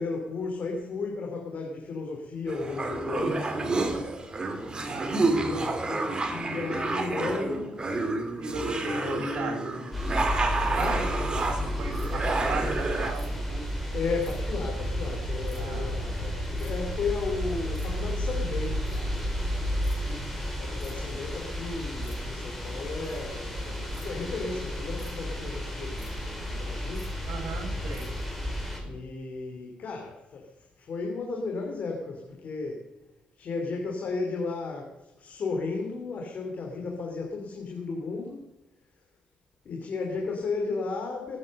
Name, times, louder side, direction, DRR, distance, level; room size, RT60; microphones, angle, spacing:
voice 1, 0.0-3.6 5.2-7.8 8.8-10.1 10.7-11.0 13.9-19.2 20.6-27.1 28.8-32.9 33.4-38.5 38.9-39.0 39.6-41.4, left 4 dB, 55° left, 1 dB, 3.1 m, -34 dB
sound 1, 2.5-13.1, right 3 dB, 30° right, 2.6 m, -29 dB
voice 2, 8.4-9.7 10.0-10.1 10.4-13.7 15.6-15.9 20.0-20.4 27.3-28.1, right 4 dB, 70° right, 4 dB, 4.5 m, -37 dB
sound 2, 9.9-28.8, equal, ahead, 5.1 m, -32 dB
19.5 x 9.7 x 6.6 m, 0.97 s
cardioid pair, 90°, 3 cm